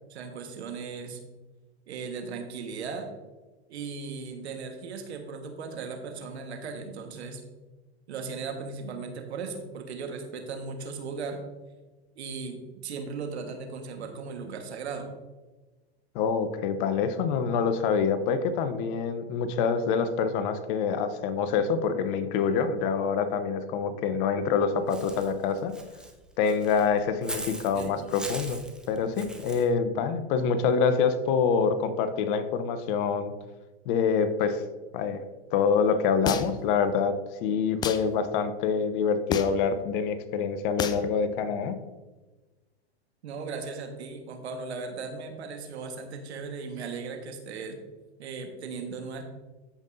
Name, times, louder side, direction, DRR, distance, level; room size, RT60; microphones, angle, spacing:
voice 1, 0.1-1.2 1.9-3.1 3.7-7.4 8.1-11.4 12.1-15.1 27.7-28.0 43.2-47.8 48.2-49.2, right 4 dB, 80° right, 5 dB, 1.5 m, -37 dB
voice 2, 16.1-25.7 26.4-28.6 28.9-33.3 33.9-34.6 34.9-35.2 35.5-41.7, left 6 dB, 50° left, 10 dB, 0.9 m, -26 dB
Walk footsteps / Bird, 24.9-29.7, right 1 dB, ahead, 0.7 m, -41 dB
sound 1, 36.3-36.7 37.8-38.0 39.3-39.7 40.8-41.1, left 5 dB, 15° left, 0.3 m, -30 dB
13.5 x 5.4 x 2.7 m, 1.2 s
hypercardioid pair, 115°, 33 cm